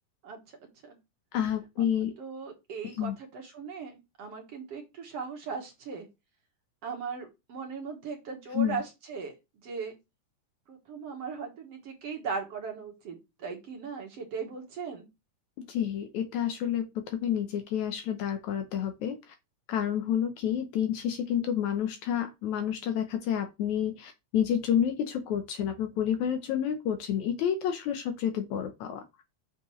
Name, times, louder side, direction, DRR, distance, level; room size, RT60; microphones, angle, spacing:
voice 1, 0.2-1.0 1.8-1.9 2.2-6.1 6.8-9.3 9.6-9.9 10.7-15.1, right 5 dB, 55° right, 2 dB, 2.1 m, -38 dB
voice 2, 1.3-2.1 3.0-3.2 8.5-8.8 15.7-19.3 19.7-29.0, left 9 dB, 70° left, 7 dB, 2.0 m, -29 dB
7.1 x 6.6 x 3.1 m, 0.23 s
omnidirectional pair, 3.8 m